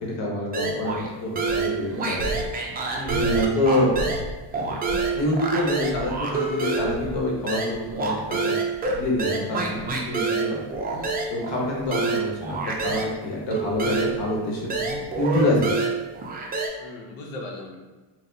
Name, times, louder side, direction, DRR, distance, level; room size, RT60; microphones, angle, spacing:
voice 1, 0.0-2.4 3.1-3.9 5.1-8.2 8.4-8.5 8.9-10.7 11.3-14.7 15.2-15.9, left 1 dB, 70° left, -2 dB, 1.1 m, -26 dB
sound 1, 0.5-1.1 1.4-4.3 4.5-13.1 13.5-16.7, right 3 dB, 20° right, 0.3 m, -27 dB
sound 2, 1.5-8.1 8.4-10.2 10.5-11.2 11.5-12.2 12.5-13.2 13.5-15.4, right 2 dB, 85° right, 0.6 m, -38 dB
voice 2, 2.9-3.4 16.8-17.8, left 2 dB, 90° left, 1 dB, 0.8 m, -37 dB
4.0 x 2.1 x 2.6 m, 1.3 s
cardioid pair, 115°, 46 cm